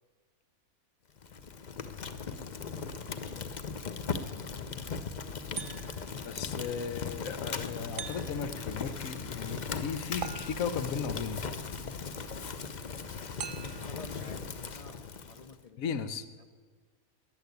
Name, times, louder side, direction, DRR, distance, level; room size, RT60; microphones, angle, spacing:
Fire, 1.2-15.6, left 5 dB, 45° left, 0.6 m, -38 dB
voice 1, 4.8-6.5 6.8-6.9 13.8-15.8 16.4-16.5, left 4 dB, 90° left, 8 dB, 0.3 m, -52 dB
sound 1, 5.6-6.2 8.0-8.6 10.2-11.0 13.4-14.0, right 8 dB, 70° right, 1.0 m, -42 dB
voice 2, 6.2-11.4 15.8-16.2, left 6 dB, 70° left, 12 dB, 1.3 m, -36 dB
13.5 x 10.0 x 9.3 m, 1.5 s
omnidirectional pair, 1.5 m